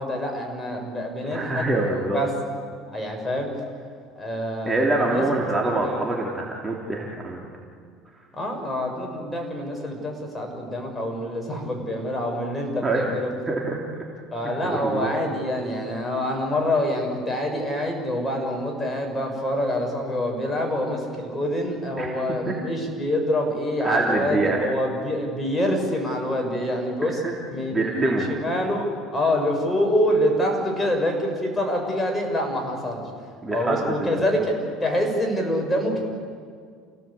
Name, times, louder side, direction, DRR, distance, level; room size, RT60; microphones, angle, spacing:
voice 1, 0.0-2.3 2.9-3.5 4.1-6.1 8.3-13.3 14.3-27.2 27.5-33.0 33.5-34.5 34.8-36.0, left 1 dB, 10° left, 2 dB, 6.3 m, -26 dB
voice 2, 1.3-2.2 4.6-7.4 12.8-13.0 13.5-13.8 14.6-15.1 22.0-22.1 23.8-24.6 27.2-27.3 27.7-28.3 33.4-34.2, right 2 dB, 15° right, -2 dB, 3.1 m, -25 dB
29.5 x 17.0 x 8.5 m, 2.1 s
supercardioid pair, 115°, 0 cm